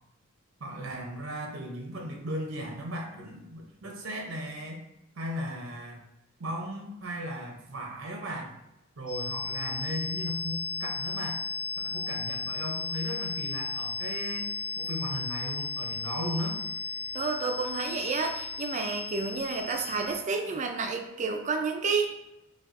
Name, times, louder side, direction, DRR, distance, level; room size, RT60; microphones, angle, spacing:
voice 1, 0.6-4.8 5.1-6.0 6.4-8.5 9.0-11.4 11.8-16.6, equal, 70° right, 1 dB, 0.6 m, -36 dB
sound 1, 9.1-20.2, left 4 dB, 10° left, 0.6 m, -35 dB
voice 2, 17.1-22.1, right 4 dB, 35° right, 4 dB, 0.4 m, -30 dB
5.0 x 2.3 x 2.5 m, 0.90 s
head